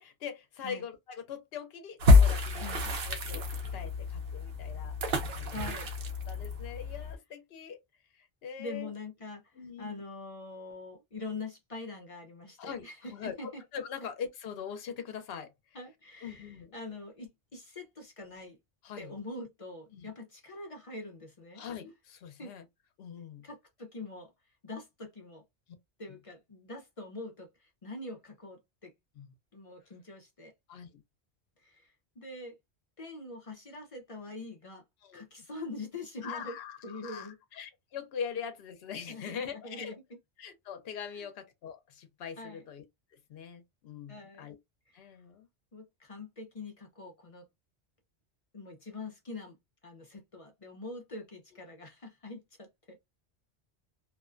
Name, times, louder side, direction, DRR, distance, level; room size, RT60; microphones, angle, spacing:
voice 1, 0.0-2.7 3.1-3.4 3.7-5.0 5.3-5.8 6.3-7.8 8.2-8.9 9.5-10.0 12.6-13.3 13.7-15.5 16.2-16.7 18.8-19.1 19.9-20.1 21.6-22.6 23.0-23.5 29.2-29.3 30.7-31.0 35.0-35.2 36.2-40.0 40.4-42.8 43.3-44.6 44.9-45.5, left 7 dB, 70° left, 0.9 m, -42 dB
sound 1, 2.0-7.1, left 3 dB, 60° right, 0.8 m, -27 dB
voice 2, 2.6-2.9 5.5-5.9 8.6-13.6 14.0-14.1 15.7-18.6 19.0-21.6 22.4-22.5 23.4-24.3 24.6-25.4 26.0-28.9 29.5-30.5 31.6-32.5 33.0-34.8 35.1-36.6 36.8-37.4 39.1-39.4 39.6-40.0 41.1-41.3 42.4-42.6 44.1-44.5 44.9-45.2 45.7-47.4 48.5-49.6 49.8-53.0, left 2 dB, 40° left, 0.5 m, -44 dB
2.5 x 2.1 x 2.4 m
omnidirectional pair, 1.1 m